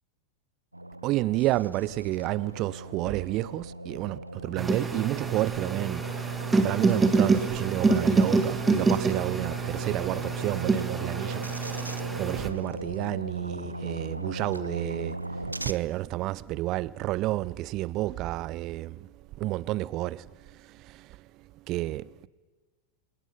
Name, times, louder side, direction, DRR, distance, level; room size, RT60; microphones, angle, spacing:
sound 1, 0.7-15.7, right 1 dB, 85° right, 0.8 m, -38 dB
voice 1, 1.0-19.1 19.4-21.2 21.7-22.3, right 17 dB, 40° right, 0.7 m, -31 dB
sound 2, 4.6-12.5, right 4 dB, 10° right, 1.7 m, -26 dB
27.5 x 18.0 x 5.5 m
figure-of-eight pair, 90°, 0 cm